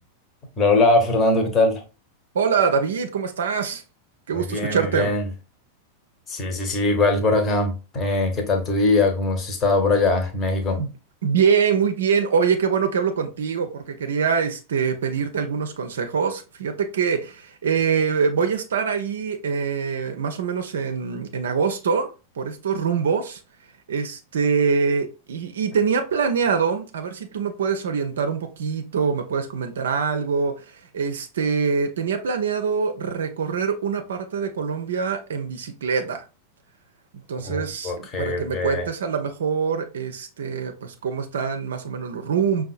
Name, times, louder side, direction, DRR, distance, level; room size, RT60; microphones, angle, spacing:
voice 1, 0.6-1.8 4.3-5.3 6.3-10.8 37.4-38.9, left 2 dB, 25° left, 0.9 m, -21 dB
voice 2, 2.3-3.8 4.3-5.1 10.8-10.9 11.2-22.1 22.4-23.4 23.9-36.3 37.3-42.6, right 6 dB, 65° right, 0.4 m, -24 dB
5.3 x 2.3 x 2.4 m
figure-of-eight pair, 90°, 0 cm